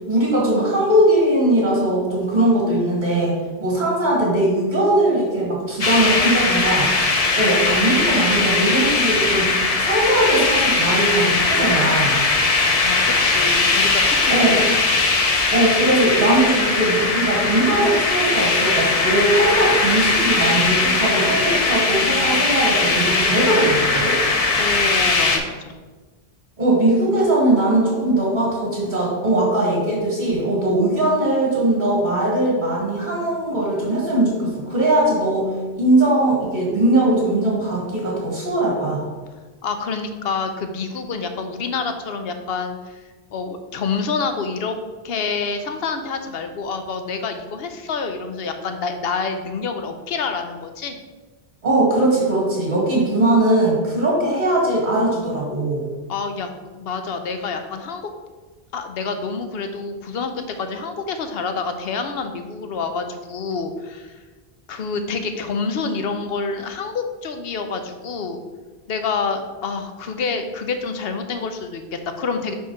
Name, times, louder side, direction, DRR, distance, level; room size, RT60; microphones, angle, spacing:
voice 1, 0.1-3.3 3.6-6.9 7.3-9.5 9.8-12.2 14.3-14.6 15.5-24.2 26.6-35.5 35.8-39.0 51.6-55.8, right 1 dB, 50° right, -4 dB, 2.2 m, -20 dB
sound 1, 5.8-25.4, left 3 dB, 40° left, 0.7 m, -19 dB
voice 2, 12.8-14.8 24.6-25.7 39.6-43.0 43.3-44.8 45.0-51.0 56.1-56.5 56.7-58.1 58.7-64.2 64.7-68.4 68.9-72.5, left 4 dB, 75° left, 7 dB, 0.9 m, -27 dB
5.6 x 4.3 x 4.8 m, 1.3 s
omnidirectional pair, 1.0 m